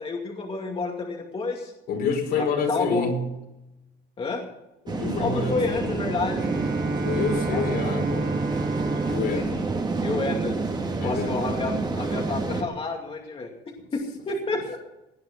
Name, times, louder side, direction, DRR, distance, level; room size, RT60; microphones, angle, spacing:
voice 1, 0.0-1.7 2.4-3.1 4.2-4.4 5.2-6.5 7.5-7.6 9.3-9.6 10.0-10.6 11.0-14.8, left 3 dB, 35° left, 1 dB, 2.3 m, -29 dB
voice 2, 1.9-3.3 4.8-6.1 7.0-8.4 9.0-9.7 11.0-11.4 14.5-14.6, left 5 dB, 70° left, 2 dB, 4.7 m, -28 dB
sound 1, 4.9-12.6, right 3 dB, 25° right, 2.3 m, -28 dB
Bowed string instrument, 6.3-11.1, right 2 dB, 55° right, 2.4 m, -32 dB
18.5 x 9.5 x 6.0 m, 0.93 s
cardioid pair, 110°, 17 cm